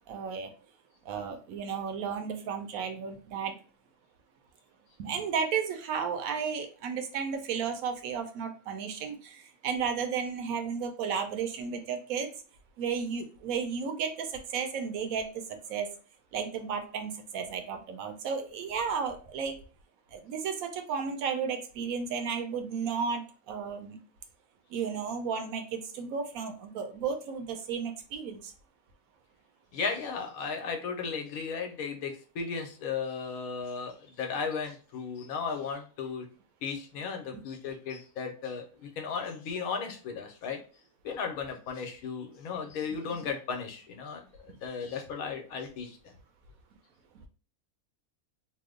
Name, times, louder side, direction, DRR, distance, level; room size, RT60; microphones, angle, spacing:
voice 1, 0.1-0.5 1.0-3.5 5.0-12.3 12.8-15.9 16.3-19.6 20.1-24.0 24.7-28.5 37.3-37.4 42.9-43.0, right 6 dB, 75° right, 6 dB, 1.0 m, -33 dB
voice 2, 29.7-36.3 36.6-40.6 41.0-44.2 44.6-46.0, left 5 dB, 80° left, 3 dB, 1.1 m, -35 dB
2.9 x 2.1 x 3.6 m, 0.38 s
omnidirectional pair, 1.5 m